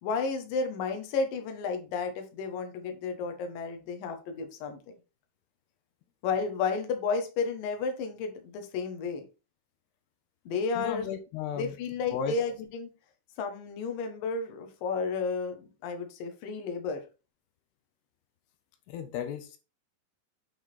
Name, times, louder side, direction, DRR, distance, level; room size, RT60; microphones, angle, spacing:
voice 1, 0.0-4.8 6.2-9.2 10.5-11.1 11.6-12.9 13.4-17.0, left 4 dB, 65° left, 5 dB, 2.8 m, -32 dB
voice 2, 10.8-11.7 12.1-12.4 18.9-19.6, left 8 dB, 85° left, 8 dB, 3.0 m, -34 dB
8.7 x 4.0 x 4.4 m, 0.31 s
omnidirectional pair, 4.6 m